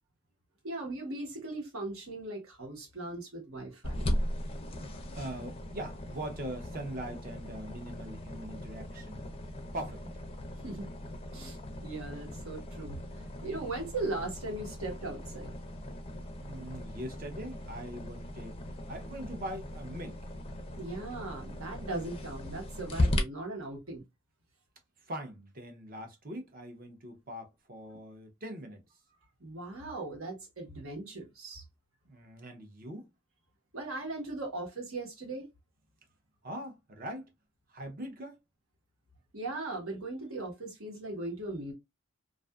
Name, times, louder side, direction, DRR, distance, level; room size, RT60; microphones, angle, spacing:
voice 1, 0.6-4.0 10.6-10.9 11.3-15.5 20.7-24.0 29.4-31.6 33.7-35.5 39.3-41.7, right 2 dB, 80° right, 1.2 m, -38 dB
sound 1, 3.8-23.2, left 1 dB, 25° left, 0.4 m, -38 dB
voice 2, 3.9-9.2 9.7-10.0 16.4-18.5 18.9-20.2 25.0-28.8 32.1-33.1 36.4-37.3 37.7-38.4, right 1 dB, 45° right, 0.7 m, -42 dB
2.5 x 2.4 x 2.3 m
head